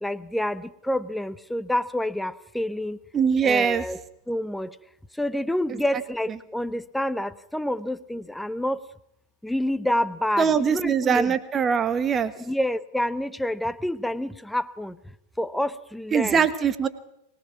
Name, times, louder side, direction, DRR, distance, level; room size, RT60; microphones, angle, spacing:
voice 1, 0.0-3.0 3.4-4.0 4.3-4.7 5.2-8.8 9.4-11.3 12.4-15.0 15.4-16.4, left 1 dB, 5° left, 16 dB, 0.8 m, -28 dB
voice 2, 3.1-3.8 5.7-5.8 10.4-12.3 16.1-16.9, right 6 dB, 20° right, 13 dB, 1.4 m, -22 dB
24.0 x 19.0 x 5.9 m, 0.80 s
figure-of-eight pair, 90°, 0 cm